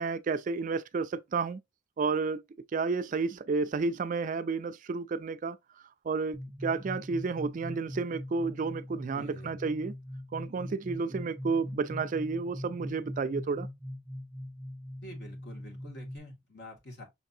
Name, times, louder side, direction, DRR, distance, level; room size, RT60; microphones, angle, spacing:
voice 1, 0.0-1.6 2.0-2.4 2.7-5.6 6.1-10.0 10.3-13.7, right 4 dB, 40° right, 0.3 m, -31 dB
sound 1, 6.3-16.2, left 1 dB, ahead, 0.9 m, -41 dB
voice 2, 9.1-9.5 15.0-17.0, left 1 dB, 60° left, 2.0 m, -47 dB
5.9 x 3.3 x 2.7 m
head